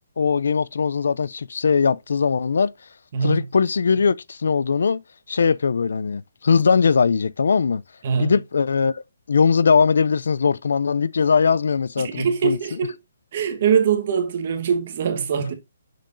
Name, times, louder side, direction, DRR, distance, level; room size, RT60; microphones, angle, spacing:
voice 1, 0.2-2.7 3.2-5.0 5.3-7.8 8.2-9.0 9.3-12.8, left 5 dB, 75° left, 0.3 m, -20 dB
voice 2, 3.1-3.5 8.0-8.3 12.0-12.9 13.3-15.5, right 7 dB, 45° right, 1.2 m, -22 dB
6.8 x 6.1 x 2.5 m
hypercardioid pair, 160°, 0 cm